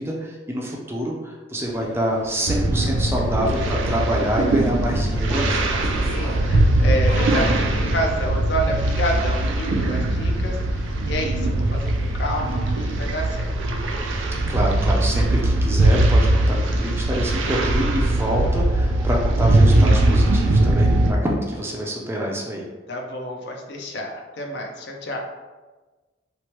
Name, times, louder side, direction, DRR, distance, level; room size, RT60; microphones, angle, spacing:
voice 1, 0.0-5.7 14.5-22.7, equal, 15° right, -2 dB, 0.4 m, -26 dB
Subway metro underground, 1.6-15.4, equal, 40° left, 1.1 m, -38 dB
sound 1, 2.5-21.1, right 1 dB, 80° right, 0.4 m, -20 dB
voice 2, 5.7-13.5 22.9-25.2, equal, 65° left, 1 dB, 0.5 m, -29 dB
3.0 x 2.1 x 2.9 m, 1.2 s
head